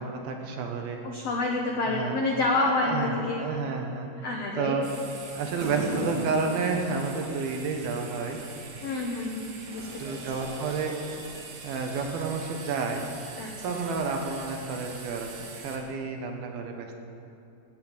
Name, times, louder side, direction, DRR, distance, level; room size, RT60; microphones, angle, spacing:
voice 1, 0.0-1.0 1.9-2.1 2.5-4.3 4.5-4.9 5.3-8.4 10.0-11.0 11.6-13.0 13.6-17.0, right 4 dB, 70° right, 3 dB, 3.0 m, -31 dB
voice 2, 1.0-3.5 4.2-4.8 8.8-10.2 13.4-13.5, left 2 dB, 80° left, 0 dB, 1.4 m, -28 dB
sound 1, 4.8-15.8, right 4 dB, 90° right, 4.2 m, -44 dB
sound 2, 5.6-8.3 9.7-11.8, right 1 dB, 30° right, 2.6 m, -37 dB
17.5 x 8.1 x 9.0 m, 2.8 s
omnidirectional pair, 4.8 m